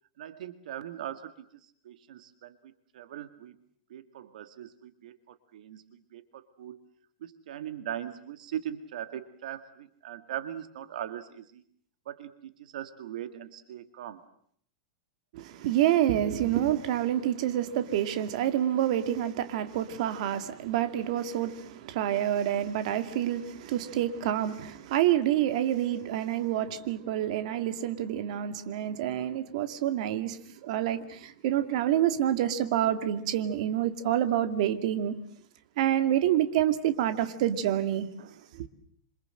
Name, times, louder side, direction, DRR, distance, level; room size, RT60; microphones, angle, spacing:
voice 1, 0.2-3.6 3.9-6.8 7.2-11.6 12.1-14.2 38.2-38.5, right 10 dB, 70° right, 2.0 m, -40 dB
voice 2, 15.3-35.2 35.8-38.1 38.5-38.7, right 11 dB, 55° right, 2.3 m, -28 dB
27.5 x 27.0 x 7.8 m
supercardioid pair, 165°, 4 cm